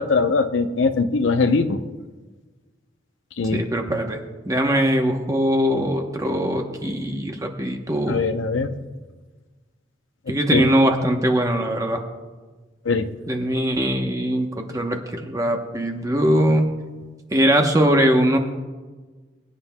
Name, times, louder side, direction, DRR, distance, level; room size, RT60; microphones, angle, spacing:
voice 1, 0.0-1.8 3.4-3.6 8.1-8.8 10.5-10.7 12.9-13.1, left 4 dB, 80° left, 9 dB, 0.7 m, -21 dB
voice 2, 3.5-4.2 4.5-8.2 10.3-12.0 13.3-16.7 17.3-18.4, equal, 15° right, 3 dB, 0.8 m, -21 dB
23.5 x 9.5 x 2.2 m, 1.3 s
head